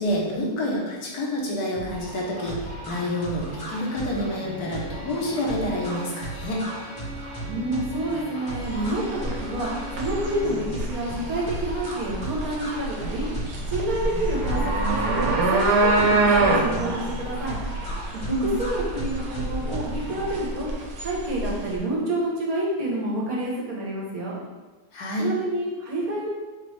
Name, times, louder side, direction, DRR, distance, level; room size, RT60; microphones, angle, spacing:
voice 1, 0.0-6.6 18.3-18.5 24.9-25.3, left 1 dB, 70° left, -3 dB, 1.4 m, -28 dB
sound 1, 1.7-20.4, right 1 dB, 45° left, 1.5 m, -37 dB
Bowed string instrument, 3.7-10.7, left 1 dB, 45° right, 1.4 m, -41 dB
voice 2, 7.5-13.3 13.7-17.6 18.1-20.7 21.0-24.4 25.2-26.3, right 1 dB, 65° right, -4 dB, 1.3 m, -28 dB
sound 2, 8.6-21.8, right 2 dB, 80° right, 1.3 m, -26 dB
4.1 x 3.0 x 3.1 m, 1.2 s
omnidirectional pair, 1.8 m